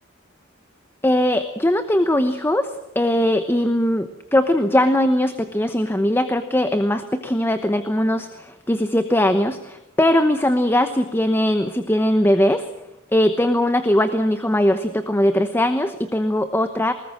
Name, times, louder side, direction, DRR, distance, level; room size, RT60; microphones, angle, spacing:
voice 1, 1.0-12.6 13.1-16.9, left 1 dB, 10° left, 9 dB, 0.9 m, -20 dB
21.0 x 19.0 x 7.4 m, 0.86 s
head